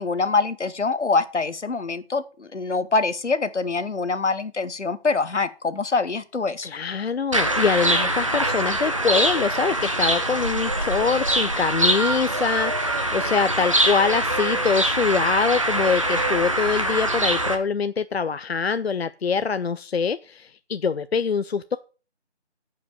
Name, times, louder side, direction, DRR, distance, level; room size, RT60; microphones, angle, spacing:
voice 1, 0.0-6.7, left 4 dB, 80° left, 14 dB, 1.2 m, -24 dB
voice 2, 6.6-21.8, left 5 dB, 65° left, 13 dB, 0.5 m, -24 dB
sound 1, 7.3-17.6, right 1 dB, 30° right, 0.9 m, -23 dB
9.4 x 5.2 x 6.8 m, 0.35 s
figure-of-eight pair, 170°, 34 cm